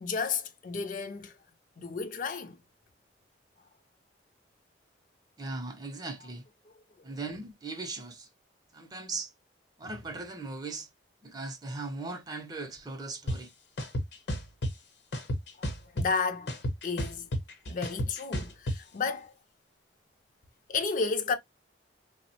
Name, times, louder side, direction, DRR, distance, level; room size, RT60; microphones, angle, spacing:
voice 1, 0.0-1.4 1.8-2.6 6.7-6.8 15.6-16.5 16.8-17.3 17.7-19.3 20.7-21.3, left 4 dB, 45° left, 0.4 m, -32 dB
voice 2, 5.4-6.4 7.0-8.3 8.7-9.3 9.8-10.9 11.2-13.5, right 3 dB, 20° right, 0.4 m, -38 dB
sound 1, 13.3-13.4 13.8-14.7 15.1-16.2 16.5-18.8, equal, 75° left, 0.8 m, -31 dB
3.3 x 2.0 x 2.7 m
head